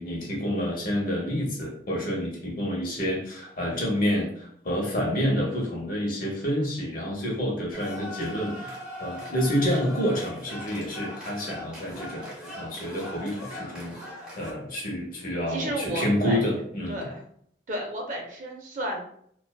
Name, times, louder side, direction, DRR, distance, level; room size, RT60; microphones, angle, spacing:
voice 1, 0.0-12.3 12.6-14.0 14.4-17.0, equal, 50° left, -2 dB, 0.8 m, -28 dB
sound 1, 7.7-14.5, left 1 dB, 5° right, 0.6 m, -40 dB
voice 2, 15.5-16.4 16.9-17.2 17.7-19.0, right 1 dB, 45° right, 1 dB, 0.5 m, -32 dB
2.5 x 2.2 x 2.2 m, 0.67 s
head